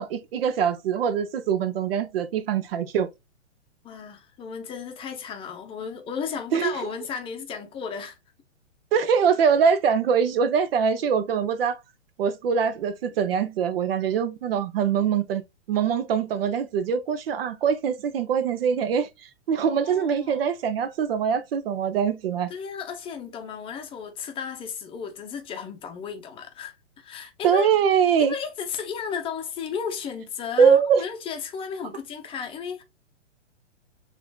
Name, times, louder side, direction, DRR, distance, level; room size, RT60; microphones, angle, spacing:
voice 1, 0.0-3.1 6.5-6.7 8.9-11.8 12.2-15.4 15.7-19.1 19.5-22.5 27.4-28.3 30.6-31.0, right 7 dB, 55° right, 0.7 m, -23 dB
voice 2, 3.8-8.2 19.8-20.4 22.5-27.7 28.2-32.8, left 6 dB, 15° left, 0.7 m, -34 dB
6.8 x 2.6 x 2.3 m
hypercardioid pair, 125°, 36 cm